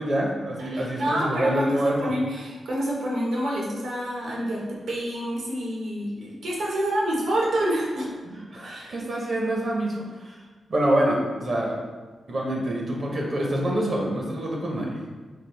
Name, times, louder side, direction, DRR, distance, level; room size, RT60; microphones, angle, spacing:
voice 1, 0.0-2.1 8.3-10.4 10.7-11.8 12.3-15.0, right 1 dB, 40° right, -1 dB, 0.6 m, -26 dB
voice 2, 0.6-8.1 8.6-8.9, right 1 dB, 80° right, -4 dB, 1.0 m, -28 dB
3.4 x 2.3 x 4.3 m, 1.3 s
wide cardioid pair, 175°, 0 cm